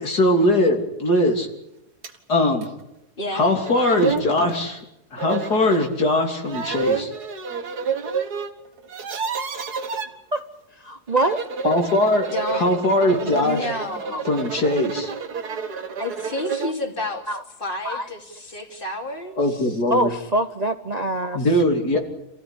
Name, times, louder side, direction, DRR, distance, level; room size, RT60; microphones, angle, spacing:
voice 1, 0.0-1.5 2.3-2.7 3.3-4.8 5.1-7.1 11.6-12.2 12.5-13.7 14.2-15.1 19.4-20.1 21.3-22.0, left 1 dB, 80° left, 3 dB, 3.8 m, -20 dB
sound 1, 2.0-2.2 2.6-2.7 3.4-3.5 3.6-4.3 5.2-5.9 6.4-8.5 8.8-10.1 11.1-16.8, right 5 dB, 75° right, 2.2 m, -29 dB
voice 2, 3.2-3.5 12.3-12.6 13.2-14.2 16.0-17.2 17.6-19.4, left 1 dB, 30° left, 4 dB, 3.2 m, -30 dB
voice 3, 10.7-11.4 14.1-14.2 17.3-17.4 17.8-18.1 19.9-21.5, right 1 dB, 30° right, 8 dB, 0.8 m, -24 dB
27.5 x 15.0 x 9.9 m, 0.85 s
omnidirectional pair, 1.7 m